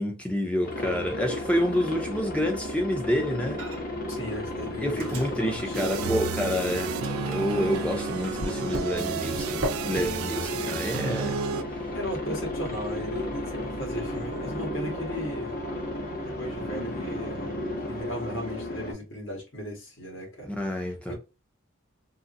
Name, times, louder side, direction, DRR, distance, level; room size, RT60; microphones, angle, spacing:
voice 1, 0.0-3.6 4.8-6.9 7.2-11.4 20.5-21.1, equal, 5° left, 0.6 m, -28 dB
Aircraft, 0.6-18.9, left 1 dB, 45° left, 0.7 m, -34 dB
Microwave oven, 3.6-4.1 4.3-6.6 7.0-18.0, right 1 dB, 65° right, 0.8 m, -41 dB
voice 2, 4.1-6.2 11.8-15.6 16.0-20.5 20.8-21.1, equal, 65° left, 1.8 m, -37 dB
sound 1, 5.7-11.6, right 7 dB, 85° right, 0.3 m, -33 dB
3.7 x 2.0 x 2.6 m
head